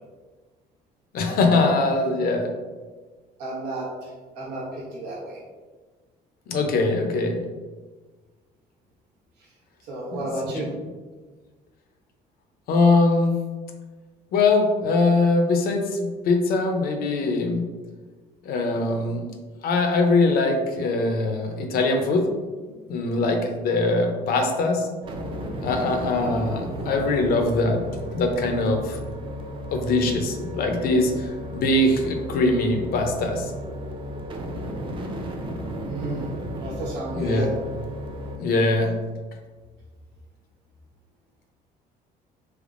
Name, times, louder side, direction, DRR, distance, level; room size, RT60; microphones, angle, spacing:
voice 1, 1.1-2.5 6.5-7.4 10.1-10.2 10.5-10.7 12.7-13.3 14.3-17.6 18.5-19.3 19.6-22.3 22.9-24.9 25.6-27.8 28.1-29.0 29.7-33.5 37.1-37.5 38.4-38.9, left 2 dB, 65° left, 4 dB, 0.6 m, -22 dB
voice 2, 3.4-5.4 9.8-10.7 35.9-36.3 36.6-37.6, right 1 dB, 90° right, -5 dB, 0.9 m, -32 dB
sound 1, 25.0-38.4, equal, 30° right, 0.5 m, -34 dB
3.4 x 3.0 x 2.5 m, 1.4 s
cardioid pair, 110°, 17 cm